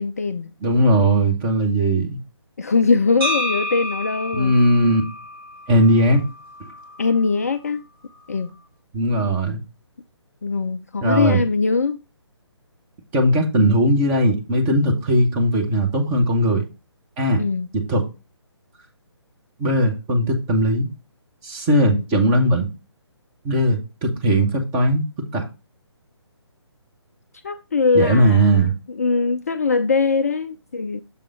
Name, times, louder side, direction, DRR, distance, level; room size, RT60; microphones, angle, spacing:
voice 1, 0.0-0.5 2.6-4.5 7.0-7.8 8.3-8.5 10.4-12.0 17.4-17.7 21.8-22.0 27.4-31.0, left 4 dB, 35° left, 0.4 m, -21 dB
voice 2, 0.6-2.1 4.3-5.0 5.7-6.2 8.9-9.6 11.0-11.4 13.1-16.6 17.2-17.4 17.9-18.0 19.6-20.9 21.4-22.7 23.4-25.0 25.3-25.5 27.9-28.7, right 1 dB, 15° right, 1.1 m, -18 dB
sound 1, 3.2-7.3, left 1 dB, 55° right, 3.0 m, -30 dB
7.0 x 3.5 x 4.8 m
figure-of-eight pair, 145°, 15 cm